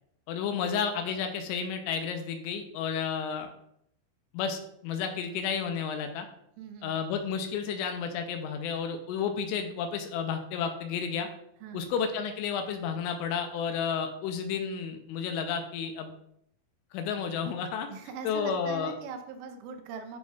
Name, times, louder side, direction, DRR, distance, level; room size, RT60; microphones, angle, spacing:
voice 1, 0.3-3.5 4.3-6.3 6.8-11.3 11.7-16.1 16.9-17.9 18.2-18.9, left 6 dB, 85° left, 5 dB, 3.0 m, -31 dB
voice 2, 6.6-6.9 11.6-11.9 17.9-20.2, right 5 dB, 85° right, 6 dB, 3.2 m, -41 dB
10.5 x 4.3 x 2.3 m, 0.72 s
omnidirectional pair, 5.6 m